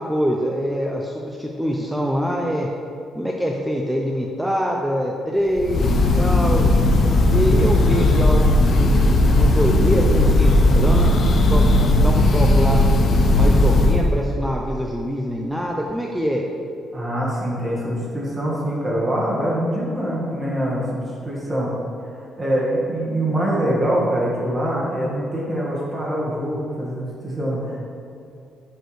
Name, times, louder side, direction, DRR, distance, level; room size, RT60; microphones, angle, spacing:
voice 1, 0.0-2.7 3.2-6.7 7.3-11.6 12.0-12.8 13.3-16.5, equal, 5° right, -1 dB, 0.5 m, -24 dB
Breathing / Bird, 5.6-14.1, left 1 dB, 55° left, 0.5 m, -16 dB
voice 2, 16.9-21.7 22.1-27.8, right 1 dB, 30° right, -6 dB, 1.4 m, -24 dB
6.5 x 4.5 x 3.2 m, 2.6 s
cardioid pair, 90°, 0 cm